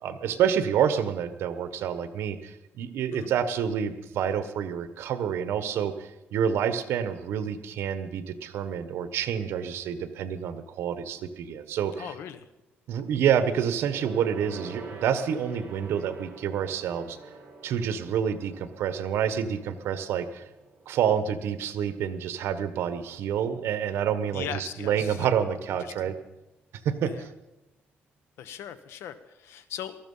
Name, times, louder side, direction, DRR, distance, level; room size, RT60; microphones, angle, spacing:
voice 1, 0.0-12.1 12.9-17.2 17.6-20.4 20.9-26.2 26.8-27.3, right 8 dB, 75° right, 11 dB, 1.2 m, -28 dB
voice 2, 12.0-12.5 24.3-25.3 25.8-26.1 27.0-27.3 28.4-30.0, left 9 dB, 90° left, 12 dB, 1.2 m, -39 dB
Gong, 13.8-23.6 23.9-24.2 24.5-24.6, right 3 dB, 40° right, 5.2 m, -47 dB
19.0 x 13.5 x 5.6 m, 0.97 s
cardioid pair, 155°, 4 cm